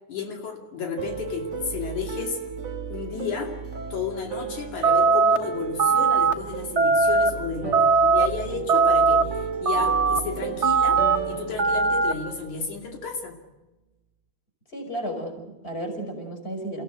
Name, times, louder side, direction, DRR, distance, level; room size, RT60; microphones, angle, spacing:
voice 1, 0.1-2.4 2.9-3.6 3.9-13.4, left 5 dB, 80° left, 2 dB, 3.9 m, -32 dB
sound 1, 1.0-13.1, right 6 dB, 35° right, 1.3 m, -34 dB
sound 2, 4.8-5.4 5.8-6.3 6.8-7.3 7.7-8.3 8.7-9.2 9.7-10.2 10.6-11.2 11.6-12.1, right 4 dB, 60° right, 0.7 m, -19 dB
voice 2, 7.6-8.8 14.7-16.8, right 1 dB, 20° left, 4 dB, 5.5 m, -35 dB
29.5 x 16.0 x 7.9 m, 1.1 s
omnidirectional pair, 3.4 m